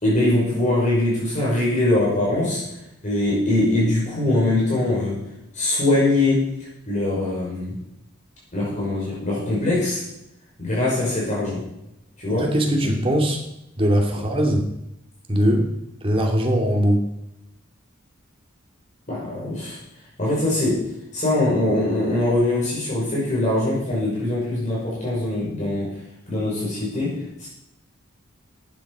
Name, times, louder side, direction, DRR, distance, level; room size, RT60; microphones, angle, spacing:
voice 1, 0.0-2.6 3.0-5.2 5.5-6.4 6.9-7.8 8.5-10.0 10.6-11.6 12.2-12.5 12.8-12.9 14.1-14.2 19.1-19.8 20.2-20.8 21.1-25.9 26.3-27.5, left 2 dB, 35° left, -6 dB, 5.7 m, -22 dB
voice 2, 12.3-13.4 13.8-14.7 15.3-15.7 16.0-17.1, equal, 25° right, 1 dB, 2.7 m, -20 dB
14.5 x 9.9 x 5.0 m, 0.84 s
head